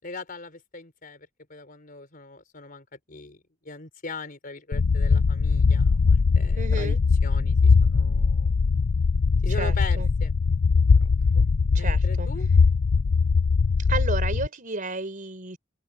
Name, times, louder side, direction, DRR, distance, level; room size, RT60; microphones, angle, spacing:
voice 1, 0.0-7.0 7.2-8.5 9.4-10.3 11.0-11.1 11.3-11.5 11.7-12.5, left 3 dB, 45° left, 4.1 m, -40 dB
sound 1, 4.7-14.5, left 4 dB, 80° left, 0.6 m, -21 dB
voice 2, 6.6-7.0 9.6-10.1 11.7-12.3 13.9-15.6, right 3 dB, 45° right, 4.6 m, -32 dB
head